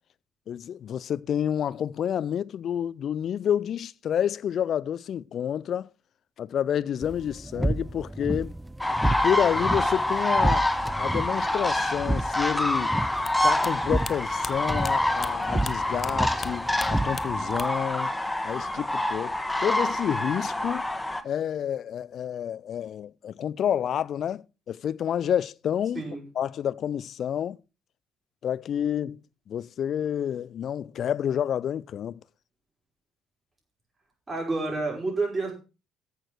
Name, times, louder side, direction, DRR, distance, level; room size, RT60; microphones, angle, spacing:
voice 1, 0.5-5.9 6.4-8.5 9.2-10.6 11.0-13.0 13.4-18.1 18.4-20.9 21.2-26.1 26.4-27.6 28.4-29.2 29.5-32.2, left 9 dB, 50° left, 0.5 m, -29 dB
sound 1, 7.0-17.6, right 1 dB, 10° right, 0.5 m, -31 dB
sound 2, 8.8-21.2, left 1 dB, 10° left, 1.6 m, -27 dB
sound 3, 13.2-16.1 16.4-17.9 18.2-18.9, left 4 dB, 30° left, 1.1 m, -39 dB
voice 2, 34.3-35.5, right 3 dB, 25° right, 5.2 m, -29 dB
14.0 x 6.4 x 6.0 m
figure-of-eight pair, 50°, 0 cm